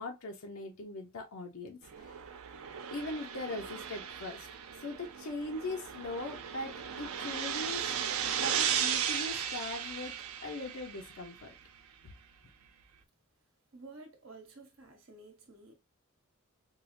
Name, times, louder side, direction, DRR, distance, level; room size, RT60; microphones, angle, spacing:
voice 1, 0.0-2.2 2.9-4.5 4.8-7.9 8.4-11.5 12.0-12.1, left 2 dB, 80° left, 0.6 m, -40 dB
sound 1, 1.8-11.4, right 8 dB, 85° right, 0.5 m, -36 dB
voice 2, 13.7-15.7, right 3 dB, 70° right, 1.2 m, -52 dB
4.5 x 2.1 x 2.5 m
head